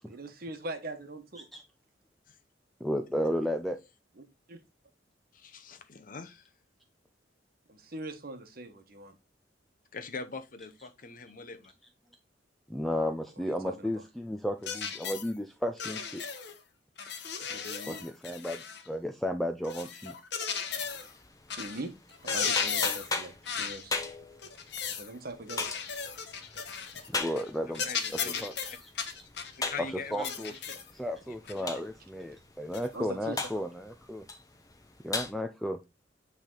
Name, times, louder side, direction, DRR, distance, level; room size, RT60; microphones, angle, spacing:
voice 1, 0.1-1.4 4.5-4.6 7.7-9.1 13.4-13.9 17.5-18.0 20.6-20.8 21.5-21.9 22.2-23.9 24.9-25.8 26.7-26.9 27.2-27.3 32.9-33.5, right 2 dB, 55° right, 1.1 m, -41 dB
voice 2, 2.8-3.8 12.7-16.2 17.9-20.1 27.0-28.9 29.8-30.6 30.9-34.2 35.0-35.8, equal, ahead, 0.4 m, -34 dB
voice 3, 5.3-6.4 9.9-11.7 27.7-28.4 29.6-30.4 30.7-30.8 31.3-31.7, left 4 dB, 45° left, 0.8 m, -42 dB
sound 1, 14.6-15.3 15.8-16.6 17.0-18.9 19.6-21.1 21.5-21.8 22.1-23.1 23.4-23.8 24.4-25.1 25.5-27.1 27.4-27.5 27.7-29.6 30.2-30.9 31.5-31.6 32.7-32.9, left 6 dB, 65° left, 1.1 m, -35 dB
sound 2, 20.7-35.3, left 3 dB, 20° left, 1.0 m, -40 dB
8.8 x 3.5 x 3.8 m
head